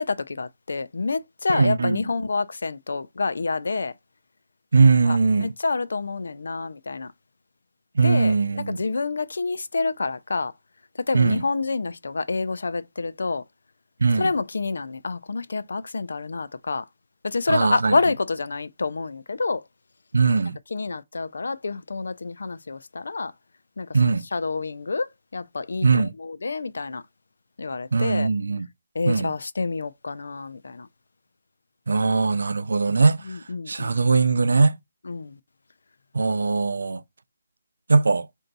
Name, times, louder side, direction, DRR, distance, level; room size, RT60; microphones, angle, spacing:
voice 1, 0.0-3.9 5.1-7.1 8.0-10.5 11.1-13.4 14.2-16.8 17.2-19.7 20.7-23.3 23.8-27.0 27.6-28.3 28.9-30.9 33.3-34.0 35.0-35.4, left 3 dB, 65° left, 0.4 m, -28 dB
voice 2, 1.5-2.0 4.7-5.5 8.0-8.8 11.1-11.4 14.0-14.3 17.5-18.0 20.1-20.6 23.9-24.2 25.8-26.1 27.9-28.7 29.1-29.3 31.9-33.3 33.7-34.8 36.1-37.0 37.9-38.3, right 4 dB, 70° right, 0.4 m, -20 dB
4.5 x 2.7 x 3.9 m
hypercardioid pair, 180°, 0 cm